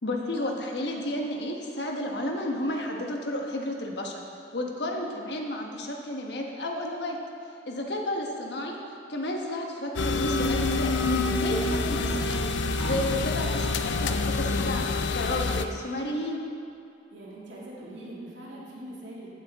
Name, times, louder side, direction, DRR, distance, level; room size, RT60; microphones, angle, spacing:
voice 1, 0.0-4.2 4.5-7.2 7.6-8.8 9.1-12.5 12.8-16.4, left 1 dB, 65° left, 1 dB, 1.3 m, -32 dB
sound 1, 10.0-15.7, left 3 dB, 80° left, 0.6 m, -27 dB
sound 2, 12.8-14.8, left 2 dB, 15° left, 2.3 m, -37 dB
voice 2, 13.1-13.5 17.1-19.3, right 1 dB, 90° right, -6 dB, 2.8 m, -43 dB
15.0 x 8.3 x 3.6 m, 2.5 s
head